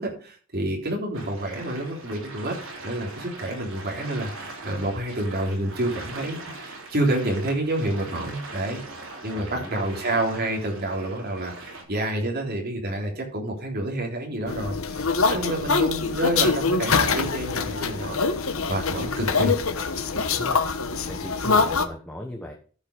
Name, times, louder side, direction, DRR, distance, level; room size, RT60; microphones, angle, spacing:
voice 1, 0.0-2.6 2.8-18.2 18.4-19.5, right 1 dB, 50° right, 0 dB, 3.3 m, -29 dB
sound 1, 1.1-11.8, right 2 dB, 65° right, 3.5 m, -41 dB
voice 2, 9.3-10.1 20.1-20.6 21.1-22.5, equal, 5° left, 1 dB, 1.1 m, -37 dB
sound 2, 14.5-21.9, left 4 dB, 70° left, 1.1 m, -24 dB
13.5 x 5.8 x 5.2 m, 0.42 s
head